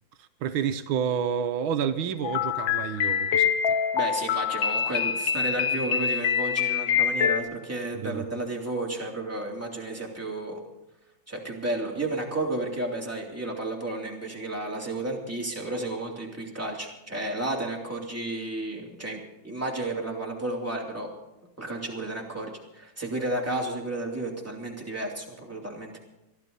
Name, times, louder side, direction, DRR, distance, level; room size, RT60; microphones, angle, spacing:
voice 1, 0.2-3.7 7.9-8.2, right 8 dB, 85° right, 9 dB, 1.6 m, -29 dB
sound 1, 2.2-7.4, left 8 dB, 70° left, 1.6 m, -25 dB
voice 2, 3.9-10.6 11.3-21.1 21.6-26.0, right 2 dB, 5° right, -2 dB, 3.1 m, -32 dB
22.0 x 13.0 x 4.1 m, 0.94 s
omnidirectional pair, 2.2 m